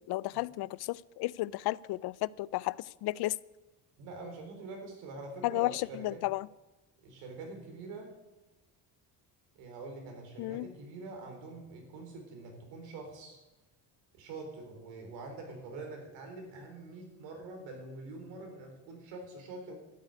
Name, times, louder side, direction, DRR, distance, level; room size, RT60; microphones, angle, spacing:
voice 1, 0.0-3.4 5.4-6.5 10.4-10.7, left 18 dB, 65° left, 0.5 m, -33 dB
voice 2, 4.0-6.2 7.0-8.1 9.5-13.4 14.1-19.7, right 3 dB, 85° right, 4.3 m, -45 dB
12.5 x 8.2 x 9.6 m
cardioid pair, 115°, 42 cm